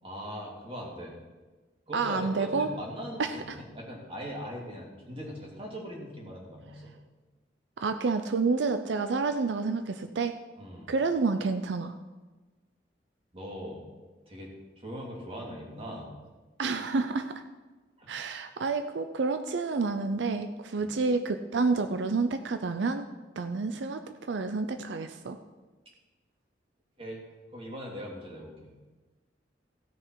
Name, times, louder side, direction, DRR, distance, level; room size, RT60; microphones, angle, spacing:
voice 1, 0.0-1.2 1.9-6.9 10.6-10.9 13.3-13.8 14.3-16.1 18.0-18.1 20.8-21.0 27.0-27.2 27.5-28.7, equal, 30° right, -2 dB, 2.9 m, -40 dB
voice 2, 1.9-2.7 3.2-3.6 7.8-10.4 10.9-11.9 16.6-17.4 18.1-23.1 23.4-25.4, right 4 dB, 90° right, 9 dB, 0.5 m, -29 dB
16.5 x 6.5 x 4.7 m, 1.2 s
head